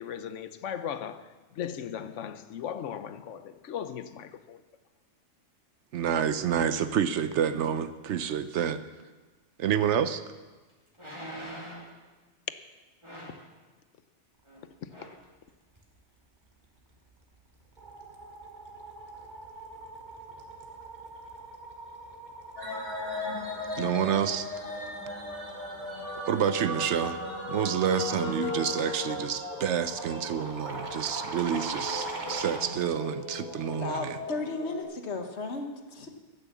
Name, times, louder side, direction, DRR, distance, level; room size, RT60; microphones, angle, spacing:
voice 1, 0.0-4.6 14.8-14.9, left 9 dB, 85° left, 1.0 m, -37 dB
voice 2, 5.9-8.8 9.6-10.2 23.8-24.5 26.2-34.2, right 8 dB, 75° right, 1.0 m, -28 dB
sound 1, 10.9-12.0 13.0-13.5 14.5-14.6 14.9-15.2 15.8-15.9, equal, 25° right, 2.2 m, -43 dB
sound 2, 16.9-17.2 17.5-32.7, right 2 dB, 40° right, 1.5 m, -43 dB
sound 3, 22.6-34.8, left 2 dB, 30° left, 3.0 m, -37 dB
voice 3, 33.8-36.1, left 3 dB, 65° left, 1.5 m, -34 dB
12.0 x 9.0 x 7.1 m
omnidirectional pair, 1.2 m